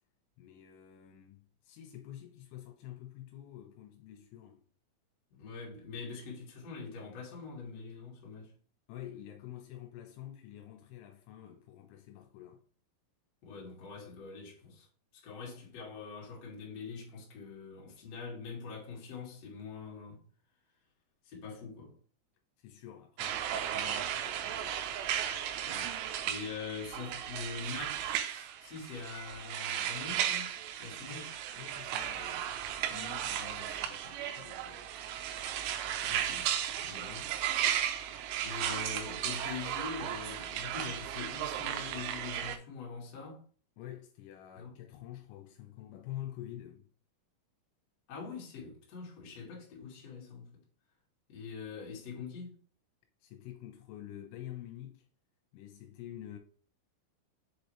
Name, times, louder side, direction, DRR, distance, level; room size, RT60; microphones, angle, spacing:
voice 1, 0.4-4.6 8.9-12.6 22.6-24.8 31.1-32.6 32.9-34.9 43.8-46.9 53.2-55.1 55.5-56.4, left 12 dB, 80° left, 3.3 m, -48 dB
voice 2, 5.3-8.5 13.4-14.9 15.1-20.2 21.2-21.9 25.7-26.0 26.2-30.5 30.8-31.3 36.0-36.5 36.8-37.3 38.4-43.4 44.6-44.7 48.1-50.6 51.3-52.5, left 5 dB, 45° left, 2.4 m, -44 dB
sound 1, 23.2-42.6, right 10 dB, 85° right, 3.1 m, -35 dB
7.0 x 4.8 x 3.2 m
omnidirectional pair, 5.7 m